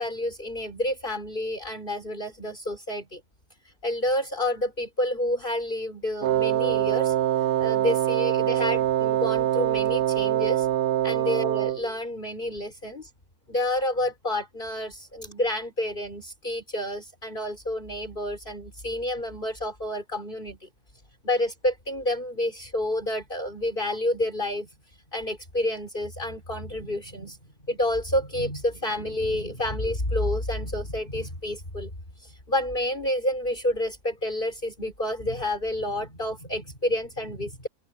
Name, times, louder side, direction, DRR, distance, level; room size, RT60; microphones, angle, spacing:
voice 1, 0.0-3.2 3.8-7.1 7.6-10.7 11.0-13.1 13.5-20.6 21.2-24.7 25.1-27.4 27.7-31.9 32.2-37.7, left 1 dB, 35° left, 5.2 m, -29 dB
Wind instrument woodwind instrument, 6.2-11.9, right 11 dB, 75° right, 0.5 m, -24 dB
open air
omnidirectional pair, 1.5 m